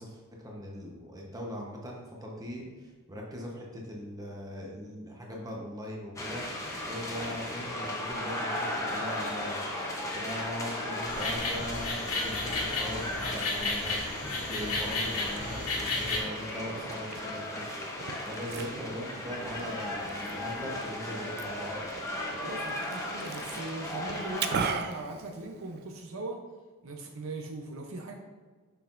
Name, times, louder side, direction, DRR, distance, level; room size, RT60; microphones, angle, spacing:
voice 1, 0.0-6.5 6.9-9.6 10.1-14.0 14.4-17.7 18.3-21.8, equal, 15° right, -2 dB, 1.0 m, -40 dB
sound 1, 6.2-24.7, left 1 dB, 15° left, 0.8 m, -36 dB
sound 2, 11.1-16.2, left 3 dB, 85° left, 1.4 m, -33 dB
Liquid, 15.0-26.0, right 5 dB, 50° right, 0.4 m, -40 dB
voice 2, 22.3-26.4 26.8-28.1, right 2 dB, 65° right, 2 dB, 0.8 m, -40 dB
6.7 x 5.5 x 2.6 m, 1.4 s
head